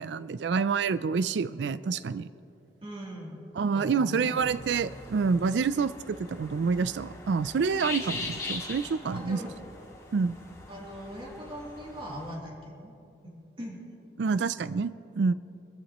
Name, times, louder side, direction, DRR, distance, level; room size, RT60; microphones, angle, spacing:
voice 1, 0.0-2.3 3.6-9.4 10.1-10.3 14.2-15.3, right 5 dB, 75° right, 15 dB, 0.4 m, -27 dB
voice 2, 2.8-4.4 9.0-9.6 10.7-12.9 13.2-13.8, equal, 30° right, -3 dB, 2.9 m, -41 dB
sound 1, 4.4-12.3, left 3 dB, 20° left, 2.1 m, -41 dB
25.0 x 14.5 x 3.0 m, 2.7 s
head